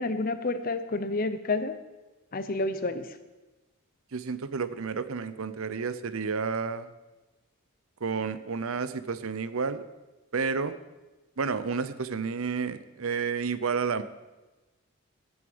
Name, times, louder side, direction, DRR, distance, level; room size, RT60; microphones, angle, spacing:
voice 1, 0.0-1.7 2.3-3.1, left 3 dB, 40° left, 11 dB, 0.7 m, -29 dB
voice 2, 4.1-6.9 8.0-9.8 10.3-10.8 11.4-14.0, right 5 dB, 65° right, 13 dB, 0.7 m, -31 dB
18.0 x 7.0 x 5.2 m, 1.1 s
head